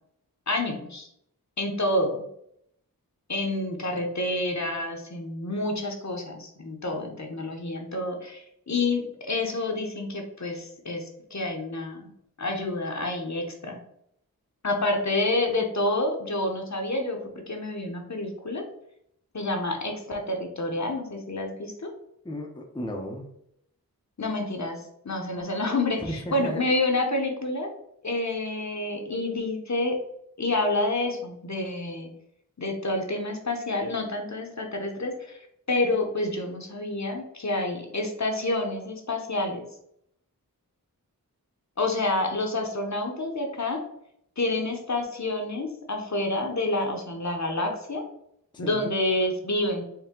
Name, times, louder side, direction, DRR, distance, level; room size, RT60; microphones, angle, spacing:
voice 1, 0.5-1.1 1.6-2.3 3.3-12.1 12.4-13.8 14.6-17.2 17.5-18.6 19.3-21.9 24.2-27.7 28.0-30.0 30.4-32.1 32.6-35.4 35.7-39.7 41.8-43.8 44.4-48.0 48.6-49.8, left 2 dB, 50° left, 2 dB, 0.8 m, -28 dB
voice 2, 22.2-23.3 26.0-26.6 48.5-48.9, equal, 15° left, 1 dB, 0.6 m, -34 dB
4.4 x 2.2 x 3.6 m, 0.73 s
wide cardioid pair, 50°, 36 cm